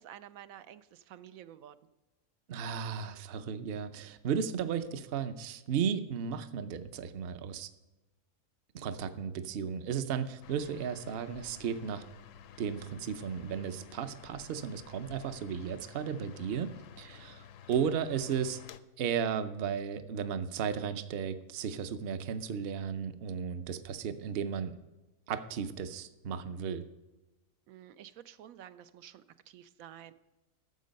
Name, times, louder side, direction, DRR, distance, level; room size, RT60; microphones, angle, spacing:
voice 1, 0.0-1.7 27.7-30.1, right 11 dB, 85° right, 12 dB, 1.0 m, -51 dB
voice 2, 2.5-7.7 8.7-12.0 12.6-18.6 19.0-24.8 25.3-26.9, right 7 dB, 55° right, 11 dB, 0.8 m, -35 dB
sound 1, 10.4-18.8, left 8 dB, 75° left, 0.9 m, -52 dB
13.5 x 7.5 x 5.2 m, 1.1 s
omnidirectional pair, 1.4 m